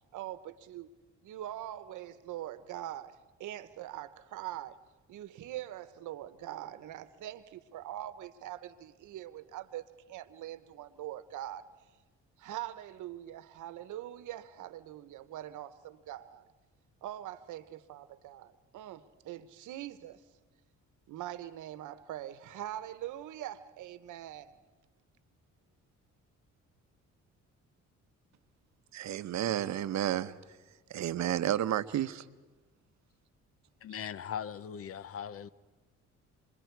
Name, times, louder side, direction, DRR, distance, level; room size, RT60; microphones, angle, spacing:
voice 1, 0.1-0.9 1.2-4.8 5.1-11.6 12.4-16.5 17.0-20.2 21.1-24.6, right 13 dB, 85° right, 1.1 m, -43 dB
voice 2, 28.9-30.3 30.9-32.2, right 11 dB, 65° right, 0.8 m, -31 dB
voice 3, 33.8-35.5, left 8 dB, 50° left, 0.7 m, -39 dB
27.5 x 22.0 x 4.6 m
cardioid pair, 90°, 30 cm